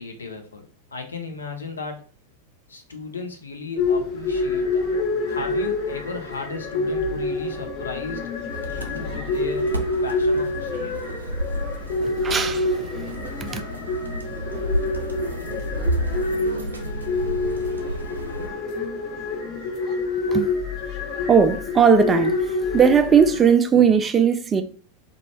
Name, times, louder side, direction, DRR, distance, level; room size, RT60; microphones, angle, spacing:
voice 1, 0.0-2.1 2.7-4.9 5.3-8.3 8.6-9.7 10.0-11.0, left 4 dB, 75° left, 0.6 m, -35 dB
sound 1, 3.8-23.5, left 3 dB, 35° left, 0.7 m, -27 dB
sound 2, 8.5-18.5, right 1 dB, 80° right, 0.5 m, -31 dB
voice 2, 12.0-13.6 20.3-20.5 21.3-24.6, right 6 dB, 20° right, 0.3 m, -19 dB
2.5 x 2.2 x 3.1 m
figure-of-eight pair, 90°, 0 cm